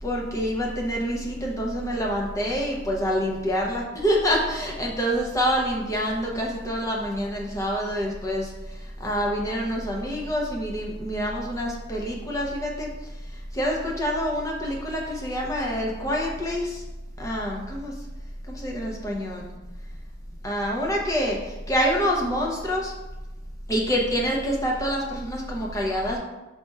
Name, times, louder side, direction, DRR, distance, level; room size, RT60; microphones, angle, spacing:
voice 1, 0.0-12.9 13.3-16.8 17.2-17.9 18.5-19.5 20.4-22.9 23.7-26.2, equal, 15° left, -2 dB, 0.6 m, -26 dB
5.0 x 4.1 x 2.3 m, 1.0 s
head